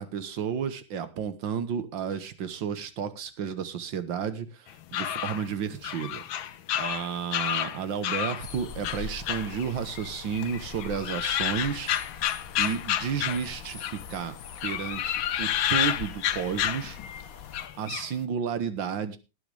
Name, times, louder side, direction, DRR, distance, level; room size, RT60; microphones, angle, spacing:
voice 1, 0.0-6.2 6.8-12.3 12.6-14.3 14.6-17.0 17.8-19.2, right 7 dB, 75° right, 11 dB, 1.9 m, -32 dB
sound 1, 4.7-8.5 8.8-10.1 10.4-14.1 14.5-17.2 17.5-18.1, left 11 dB, 90° left, 1.6 m, -30 dB
sound 2, 8.4-17.7, left 7 dB, 55° left, 1.1 m, -43 dB
18.5 x 9.1 x 3.4 m, 0.30 s
omnidirectional pair, 2.1 m